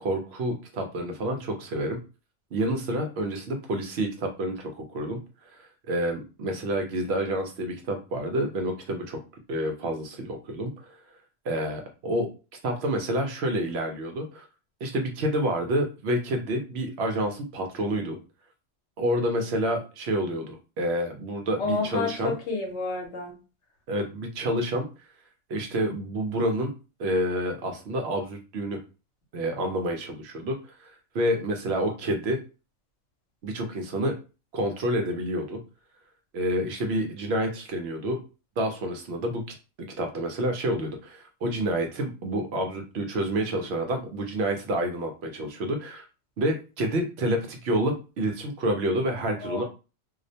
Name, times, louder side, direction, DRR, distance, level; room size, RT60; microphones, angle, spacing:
voice 1, 0.0-2.0 2.5-5.2 5.5-9.2 9.5-11.0 11.4-12.3 12.6-14.5 14.8-18.2 19.0-22.3 23.9-24.9 25.5-26.7 27.0-28.8 29.3-32.4 33.4-34.1 34.5-35.6 36.3-38.2 38.6-39.4 40.0-46.0 46.4-49.6, right 1 dB, 65° right, 4 dB, 0.8 m, -28 dB
voice 2, 21.6-23.3 49.4-49.6, left 3 dB, 70° left, 1 dB, 1.0 m, -30 dB
2.4 x 2.0 x 2.6 m, 0.31 s
omnidirectional pair, 1.2 m